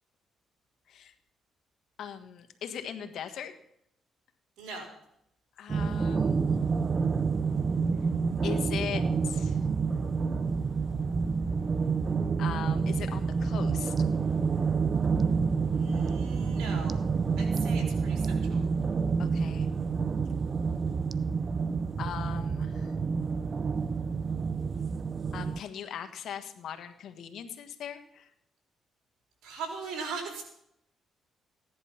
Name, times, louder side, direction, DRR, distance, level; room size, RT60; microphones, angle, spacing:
voice 1, 2.0-3.5 5.6-6.5 8.4-9.6 12.4-13.9 19.2-19.7 22.0-22.9 25.3-28.3, left 9 dB, 70° left, 7 dB, 1.4 m, -39 dB
voice 2, 4.6-4.9 15.7-17.0 17.4-18.6 29.4-30.4, right 4 dB, 85° right, 1 dB, 4.3 m, -39 dB
sound 1, 5.7-25.6, right 5 dB, 40° right, 0.6 m, -28 dB
16.0 x 11.0 x 5.8 m, 0.76 s
cardioid pair, 90°, 0 cm